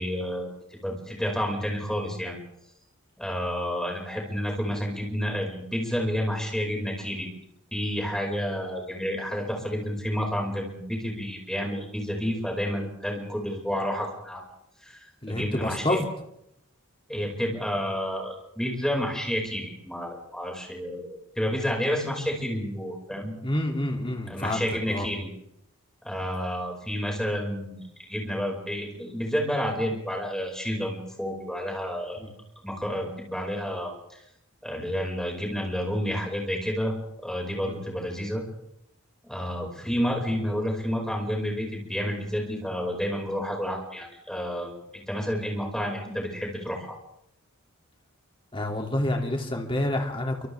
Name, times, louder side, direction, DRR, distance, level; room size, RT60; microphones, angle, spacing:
voice 1, 0.0-2.4 3.2-7.3 7.7-14.4 14.8-15.0 15.3-16.0 17.1-23.3 24.3-25.3 26.0-27.8 28.1-32.2 32.6-33.9 34.6-37.0 37.2-38.4 39.2-47.0, equal, 5° left, -1 dB, 5.4 m, -30 dB
voice 2, 15.2-16.1 23.4-25.1 32.2-32.3 37.6-37.8 48.5-50.5, left 1 dB, 25° left, 2 dB, 2.7 m, -28 dB
29.0 x 25.0 x 3.5 m, 0.79 s
head